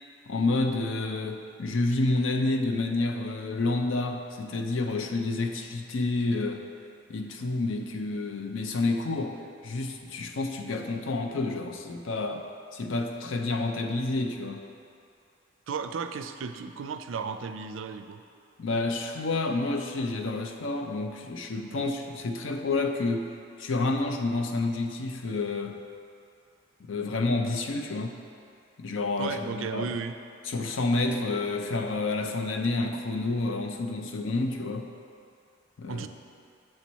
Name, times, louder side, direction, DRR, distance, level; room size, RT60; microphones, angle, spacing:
voice 1, 0.3-6.6 7.1-9.4 9.6-12.4 12.7-14.6 18.6-23.3 23.6-25.8 26.9-28.2 28.8-29.9 30.5-34.9 35.8-36.0, left 2 dB, 80° left, 4 dB, 0.6 m, -29 dB
voice 2, 15.7-18.2 21.7-21.9 29.2-30.1 35.9-36.1, right 5 dB, 85° right, 9 dB, 0.4 m, -34 dB
7.7 x 4.5 x 4.1 m, 2.4 s
head